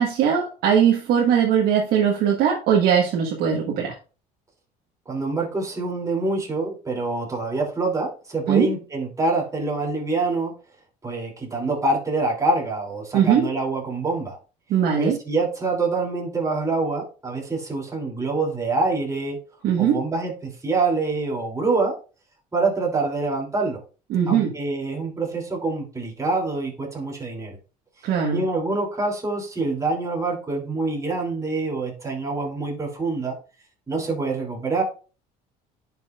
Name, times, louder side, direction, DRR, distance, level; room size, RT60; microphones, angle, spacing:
voice 1, 0.0-3.9 8.5-8.7 13.1-13.4 14.7-15.2 19.6-20.0 24.1-24.5 28.0-28.4, right 8 dB, 70° right, -1 dB, 1.5 m, -20 dB
voice 2, 5.1-10.5 11.0-14.4 15.0-19.4 19.8-21.9 22.5-23.8 24.3-27.6 28.3-33.3 33.9-34.8, right 3 dB, 20° right, -2 dB, 3.1 m, -25 dB
10.5 x 5.6 x 2.5 m, 0.35 s
supercardioid pair, 90°, 17 cm